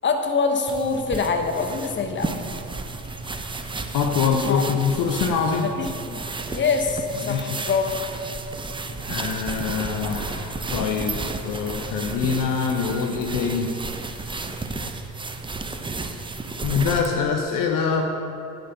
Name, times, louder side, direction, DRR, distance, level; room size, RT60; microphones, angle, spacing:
voice 1, 0.0-2.3 4.4-5.0 5.6-6.2 6.5-7.9, left 4 dB, 25° left, 5 dB, 1.2 m, -25 dB
sound 1, 0.7-17.2, right 3 dB, 10° right, 0.6 m, -32 dB
voice 2, 3.9-5.7 7.2-7.6 9.0-13.7 14.1-14.6 16.6-18.0, left 6 dB, 45° left, 3 dB, 0.9 m, -24 dB
9.4 x 7.9 x 5.7 m, 2.8 s
figure-of-eight pair, 60°, 45 cm